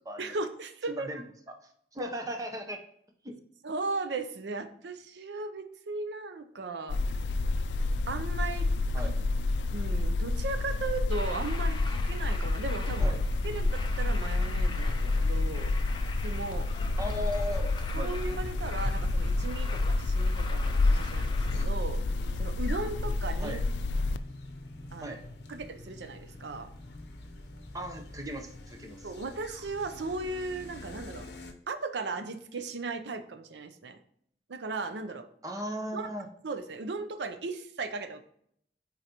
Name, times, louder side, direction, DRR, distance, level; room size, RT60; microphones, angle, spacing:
voice 1, 0.2-1.2 3.6-7.0 8.1-8.7 9.0-9.1 9.7-13.1 13.4-15.7 16.2-16.7 17.9-23.6 24.9-25.2 25.5-26.7 29.0-31.3 31.7-34.0 34.5-35.3 35.9-36.1 36.4-38.2, right 3 dB, 85° right, 9 dB, 0.6 m, -37 dB
voice 2, 1.9-2.8 3.2-3.3 8.9-9.1 13.0-13.2 17.0-18.1 23.4-23.6 25.0-25.2 27.7-29.1 35.4-36.3, equal, 20° right, 4 dB, 0.7 m, -37 dB
sound 1, 6.9-24.2, left 2 dB, 90° left, 0.3 m, -29 dB
Truck, 11.1-21.6, left 1 dB, 25° left, 0.6 m, -38 dB
sound 2, 20.6-31.5, left 2 dB, 70° left, 0.7 m, -46 dB
8.9 x 4.0 x 2.9 m, 0.68 s
head